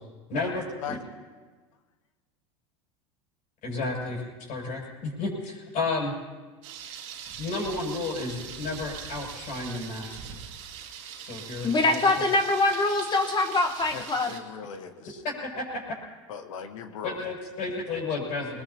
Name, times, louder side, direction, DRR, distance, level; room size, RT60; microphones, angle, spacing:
voice 1, 0.3-1.0 3.6-6.1 7.4-10.2 11.2-12.2 15.2-15.6 17.0-18.6, left 3 dB, 50° left, -2 dB, 6.8 m, -32 dB
Thunder, 6.6-14.4, right 8 dB, 65° right, 2.2 m, -42 dB
voice 2, 11.6-14.3, left 2 dB, 25° left, 5 dB, 1.4 m, -24 dB
voice 3, 13.9-15.2 16.3-17.2, left 7 dB, 80° left, 6 dB, 1.3 m, -39 dB
22.0 x 20.0 x 2.9 m, 1.4 s
hypercardioid pair, 100°, 16 cm